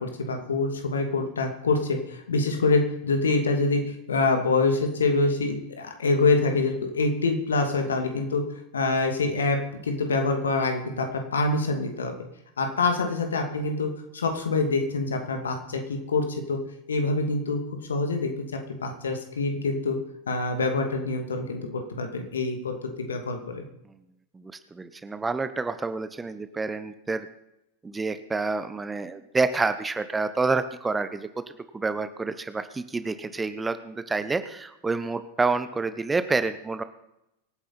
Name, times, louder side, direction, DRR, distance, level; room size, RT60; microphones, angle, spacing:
voice 1, 0.0-8.4 8.7-12.1 12.6-16.6 16.9-17.6 17.9-18.5 18.8-20.0 20.3-23.6, left 3 dB, 70° left, 5 dB, 2.7 m, -25 dB
voice 2, 24.3-27.3 27.8-31.3 31.7-36.8, right 3 dB, 10° right, 11 dB, 1.0 m, -28 dB
24.5 x 9.7 x 4.3 m, 0.85 s
figure-of-eight pair, 90°, 0 cm